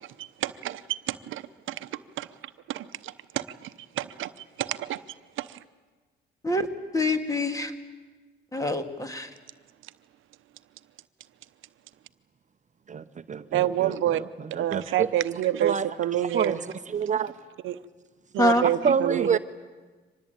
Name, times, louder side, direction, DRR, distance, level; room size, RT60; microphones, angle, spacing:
voice 1, 0.2-1.4 1.7-1.9 2.2-2.3 2.7-3.7 4.0-4.3 4.6-5.0 5.4-5.6 13.5-14.2 14.5-16.6 17.6-17.8 18.3-19.4, right 12 dB, 80° right, 12 dB, 0.8 m, -28 dB
voice 2, 6.9-7.7 8.5-9.3 18.4-18.7, left 1 dB, 15° left, 7 dB, 2.1 m, -25 dB
voice 3, 12.9-15.1 15.6-17.3 18.8-19.4, right 6 dB, 40° right, 10 dB, 0.9 m, -28 dB
25.0 x 19.5 x 9.1 m, 1.3 s
cardioid pair, 90°, 20 cm